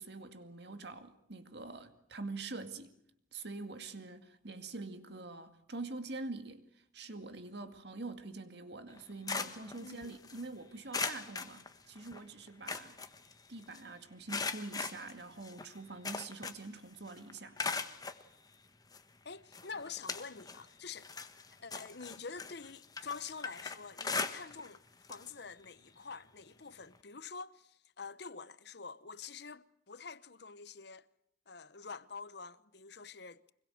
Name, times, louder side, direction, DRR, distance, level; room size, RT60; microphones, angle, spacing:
voice 1, 0.0-2.9 3.3-13.1 13.5-17.6, right 3 dB, 55° right, 2.2 m, -45 dB
sound 1, 8.9-10.4 10.9-12.2 12.5-13.8 14.3-16.8 17.1-18.2 18.9-19.0 19.5-20.6 21.0-24.8 25.0-25.3 25.6-25.7 26.9-27.0, left 4 dB, 20° left, 1.3 m, -40 dB
voice 2, 9.8-10.2 19.2-21.1 21.6-24.8 25.1-31.1 31.5-33.5, left 5 dB, 55° left, 0.9 m, -47 dB
25.5 x 21.5 x 7.9 m
head